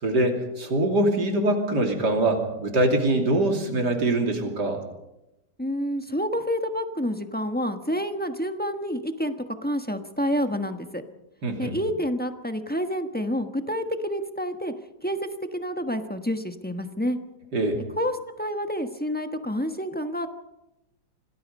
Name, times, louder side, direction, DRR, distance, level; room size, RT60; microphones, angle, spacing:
voice 1, 0.0-4.8 11.4-11.8 17.5-17.8, right 1 dB, 65° right, 3 dB, 3.4 m, -23 dB
voice 2, 5.6-9.3 9.6-11.0 11.6-14.7 15.0-17.2 18.0-20.3, equal, 5° left, 6 dB, 1.0 m, -28 dB
26.5 x 18.5 x 5.4 m, 0.92 s
omnidirectional pair, 2.0 m